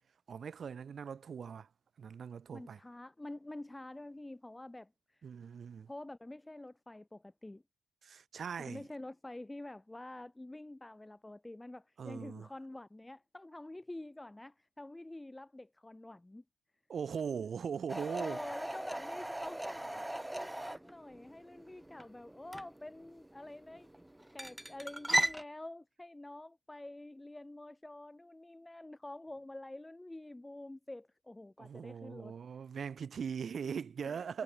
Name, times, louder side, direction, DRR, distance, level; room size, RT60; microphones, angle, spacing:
voice 1, 0.3-1.7 2.0-2.8 5.2-5.9 8.0-8.8 12.0-12.5 16.9-18.4 31.6-34.4, right 6 dB, 50° right, 3.4 m, -40 dB
voice 2, 2.5-5.2 5.9-7.6 8.6-16.4 18.1-23.9 24.2-32.3 34.0-34.2, left 1 dB, 10° left, 4.5 m, -48 dB
sound 1, 17.9-25.4, right 1 dB, 10° right, 0.8 m, -38 dB
cardioid pair, 90°, 0 cm